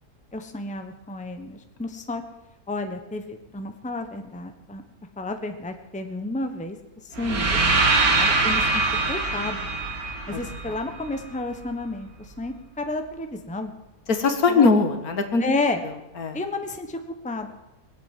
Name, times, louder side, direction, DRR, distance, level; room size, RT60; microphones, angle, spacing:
voice 1, 0.3-2.2 2.7-4.8 5.2-6.8 7.0-7.6 8.1-8.8 9.1-9.7 10.3-13.7 14.5-14.7 15.4-15.8 16.3-17.5, left 2 dB, 5° left, 6 dB, 1.1 m, -31 dB
sound 1, 7.2-11.2, right 3 dB, 65° right, 2.5 m, -23 dB
voice 2, 14.1-15.4 15.8-16.4, left 4 dB, 65° left, 7 dB, 2.0 m, -21 dB
22.0 x 8.4 x 7.6 m, 0.96 s
omnidirectional pair, 1.7 m